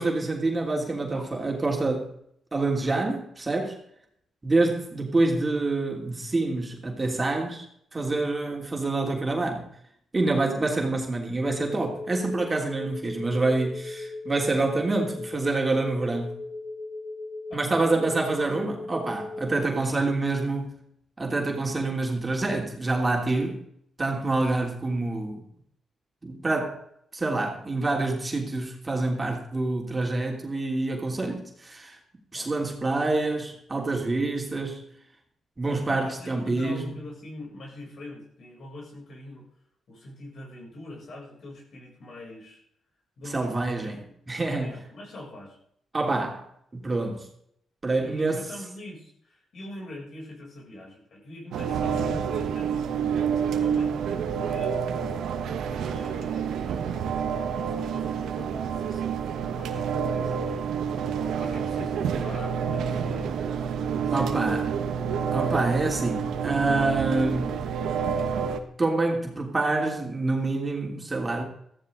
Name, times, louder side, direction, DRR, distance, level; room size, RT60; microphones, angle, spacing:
voice 1, 0.0-2.1 2.5-3.8 4.4-7.6 7.9-9.7 10.1-16.4 17.5-20.8 21.2-23.6 24.0-25.4 26.2-26.8 27.1-32.0 32.3-34.9 35.6-36.9 43.3-44.8 45.9-46.4 46.7-47.3 47.8-48.5 64.1-64.6 65.3-67.6 68.8-71.4, right 2 dB, 25° right, 3.2 m, -27 dB
sound 1, 11.4-19.5, left 2 dB, 35° left, 2.1 m, -37 dB
voice 2, 17.5-18.1 19.9-20.0 32.3-32.5 35.7-39.4 39.9-42.6 43.2-44.1 44.6-45.6 46.1-46.3 48.0-52.8 53.3-57.1 57.4-60.6 61.4-63.6 64.0-64.8, left 1 dB, 65° left, 7.5 m, -43 dB
sound 2, 51.5-68.6, right 7 dB, 80° right, 1.3 m, -28 dB
15.0 x 14.0 x 4.0 m
cardioid pair, 70°, 0 cm